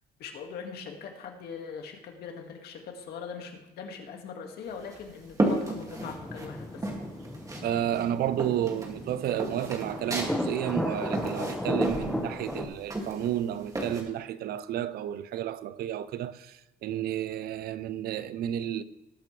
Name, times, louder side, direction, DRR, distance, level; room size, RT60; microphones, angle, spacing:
voice 1, 0.2-6.9, left 6 dB, 70° left, 2.0 m, -41 dB
sound 1, 4.6-6.5 6.8-7.7 7.9-14.0, right 2 dB, 20° right, 2.2 m, -33 dB
sound 2, 6.0-12.7, left 1 dB, 5° left, 1.4 m, -35 dB
voice 2, 7.6-18.8, right 11 dB, 65° right, 0.6 m, -31 dB
19.0 x 8.4 x 3.3 m
cardioid pair, 110°, 17 cm